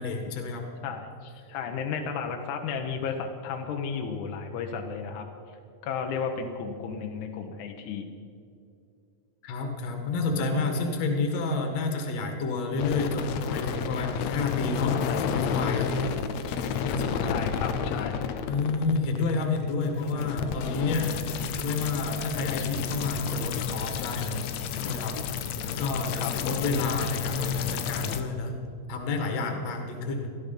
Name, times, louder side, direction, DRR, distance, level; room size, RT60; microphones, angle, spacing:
voice 1, 0.0-0.6 9.4-16.2 16.8-17.7 18.5-24.4 24.8-25.1 25.6-28.5 28.9-30.3, left 3 dB, 50° left, 4 dB, 2.7 m, -29 dB
voice 2, 0.8-5.3 5.8-8.1 17.2-18.1 26.2-26.7, left 6 dB, 70° left, 3 dB, 2.2 m, -33 dB
sound 1, 12.8-28.2, left 7 dB, 85° left, 1.5 m, -31 dB
18.5 x 13.5 x 5.4 m, 2.4 s
omnidirectional pair, 4.2 m